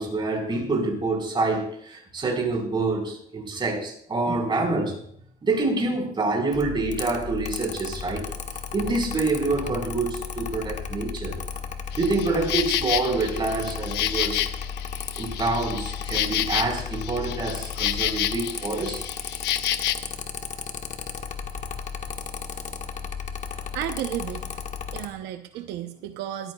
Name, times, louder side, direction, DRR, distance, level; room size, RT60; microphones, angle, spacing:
voice 1, 0.0-5.0 5.4-8.3 8.7-11.4 11.9-14.4 15.2-19.0, right 3 dB, 30° right, 4.4 m, -26 dB
Mechanical fan, 6.5-25.1, left 6 dB, 45° left, 1.4 m, -34 dB
Insect, 11.9-19.9, left 12 dB, 85° left, 0.8 m, -29 dB
voice 2, 23.7-24.5 24.9-26.5, right 11 dB, 85° right, 0.8 m, -33 dB
20.0 x 14.0 x 2.3 m
cardioid pair, 110°, 17 cm